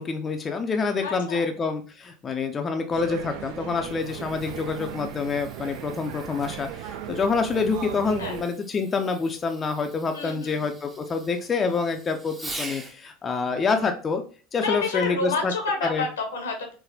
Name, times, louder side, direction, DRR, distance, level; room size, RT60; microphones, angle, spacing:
voice 1, 0.0-6.7 7.1-14.2 14.5-15.5 15.9-16.0, left 4 dB, 30° left, 5 dB, 0.4 m, -27 dB
voice 2, 1.0-1.5 8.2-8.4 10.1-10.6 14.6-16.7, left 3 dB, 80° left, 3 dB, 0.8 m, -29 dB
sound 1, 2.9-8.4, right 10 dB, 65° right, 0.3 m, -37 dB
Fireworks, 3.8-13.0 15.0-15.3 16.0-16.1, right 2 dB, 15° right, 0.7 m, -44 dB
3.9 x 2.1 x 2.7 m, 0.39 s
hypercardioid pair, 75°, 0 cm